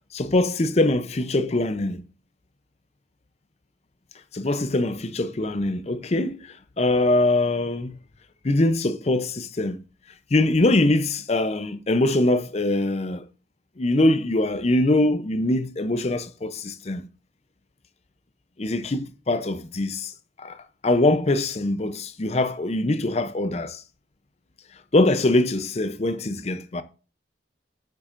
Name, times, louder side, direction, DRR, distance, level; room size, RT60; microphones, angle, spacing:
voice 1, 0.1-2.0 4.3-6.5 6.8-8.0 8.4-9.8 10.3-13.2 13.8-17.1 18.6-20.1 20.4-20.6 20.8-23.8 24.9-26.8, left 2 dB, 35° left, 0.6 m, -23 dB
9.2 x 7.2 x 2.5 m
head